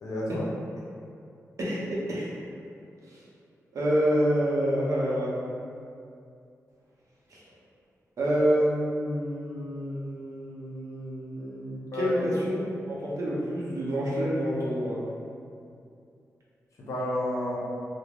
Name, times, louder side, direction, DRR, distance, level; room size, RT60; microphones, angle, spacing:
voice 1, 0.0-0.4 11.9-12.4 16.8-17.6, left 1 dB, 70° left, -5 dB, 0.6 m, -30 dB
voice 2, 1.6-2.3 3.1-3.2 3.7-5.3 7.3-7.4 8.2-15.0, equal, 65° right, -6 dB, 0.6 m, -28 dB
2.4 x 2.0 x 3.3 m, 2.4 s
wide cardioid pair, 105°, 6 cm